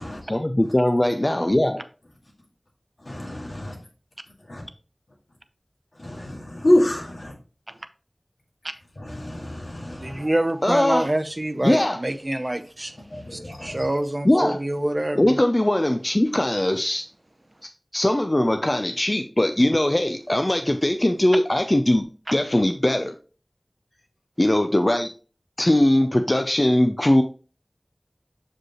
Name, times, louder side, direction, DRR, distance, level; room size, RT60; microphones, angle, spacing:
voice 1, 0.2-1.8 10.6-11.1 11.6-12.0 14.2-14.6 15.2-17.0 17.9-23.2 24.4-25.1 25.6-27.2, left 1 dB, 35° left, 0.5 m, -20 dB
voice 2, 3.0-3.7 4.5-4.6 6.0-7.3 9.0-10.2 13.1-13.8, left 1 dB, 80° left, 1.9 m, -26 dB
voice 3, 9.8-15.4, right 1 dB, 45° right, 0.6 m, -27 dB
6.4 x 5.0 x 3.0 m
wide cardioid pair, 40°, 0 cm